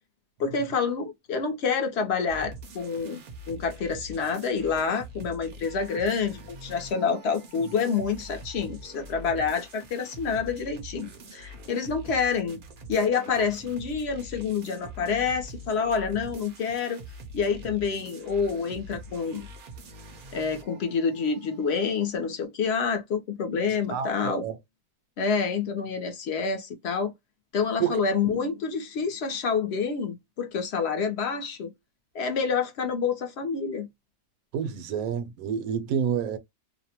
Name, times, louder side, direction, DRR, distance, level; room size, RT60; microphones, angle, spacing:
voice 1, 0.4-3.2 3.5-12.6 12.9-17.0 17.3-19.5 20.3-24.4 25.2-27.1 27.5-31.7 32.1-33.9, left 5 dB, 55° left, 0.8 m, -28 dB
sound 1, 2.3-22.1, right 1 dB, 55° right, 0.6 m, -44 dB
voice 2, 23.9-24.6 27.8-28.3 34.5-36.4, right 8 dB, 80° right, 1.0 m, -29 dB
2.7 x 2.0 x 2.7 m
omnidirectional pair, 1.5 m